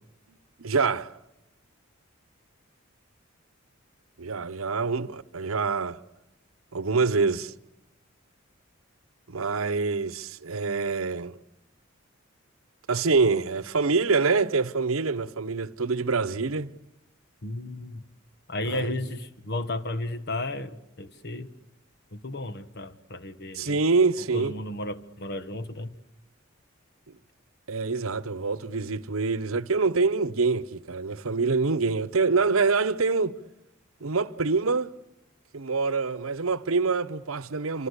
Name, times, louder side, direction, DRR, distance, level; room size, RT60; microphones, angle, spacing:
voice 1, 0.3-1.2 4.2-6.0 6.7-7.5 9.3-11.4 12.9-16.7 18.7-19.1 23.5-24.5 27.7-33.4 34.0-34.9 35.5-37.9, right 4 dB, 80° right, 0.9 m, -26 dB
voice 2, 17.4-18.0 18.5-21.5 22.1-23.8 24.3-25.9, left 2 dB, 55° left, 1.6 m, -33 dB
27.5 x 25.0 x 8.3 m
head